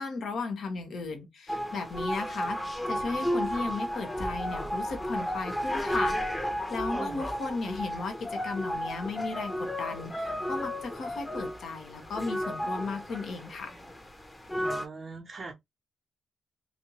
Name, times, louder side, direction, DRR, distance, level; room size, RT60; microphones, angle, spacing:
voice 1, 0.0-2.6 2.9-6.2 6.7-13.8, left 4 dB, 65° left, 1.2 m, -35 dB
sound 1, 1.5-14.9, equal, 15° left, 1.0 m, -33 dB
voice 2, 6.9-7.2 14.6-15.5, right 3 dB, 50° right, 0.9 m, -41 dB
3.2 x 2.7 x 3.0 m
supercardioid pair, 55°, 0 cm